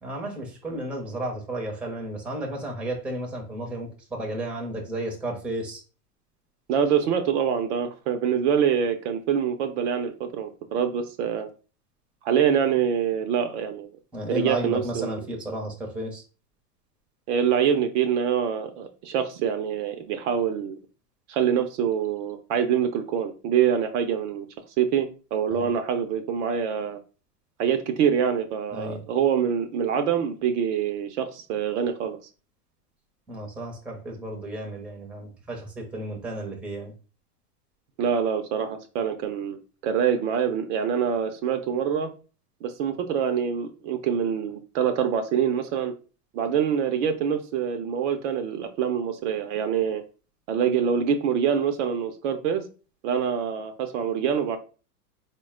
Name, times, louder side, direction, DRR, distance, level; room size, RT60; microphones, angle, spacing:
voice 1, 0.0-5.8 14.1-16.2 25.5-25.7 28.7-29.0 33.3-36.9, right 1 dB, 5° right, 0 dB, 0.7 m, -33 dB
voice 2, 6.7-11.5 12.2-13.9 14.3-15.2 17.3-20.8 21.3-24.5 24.8-27.0 27.6-32.2 38.0-42.1 42.6-45.9 46.3-50.0 50.5-52.6 53.0-54.6, right 8 dB, 50° right, 6 dB, 0.6 m, -25 dB
3.9 x 2.2 x 3.6 m, 0.35 s
hypercardioid pair, 125°, 47 cm